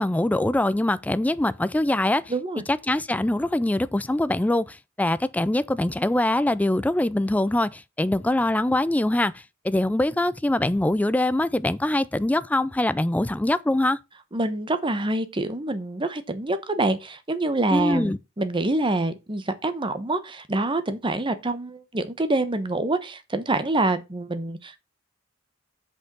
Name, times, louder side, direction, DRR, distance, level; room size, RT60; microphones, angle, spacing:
voice 1, 0.0-2.3 2.7-14.0 17.7-18.2, left 1 dB, 10° left, 0.3 m, -23 dB
voice 2, 2.3-2.6 14.3-24.8, right 2 dB, 25° right, 1.0 m, -26 dB
6.4 x 5.5 x 5.2 m
head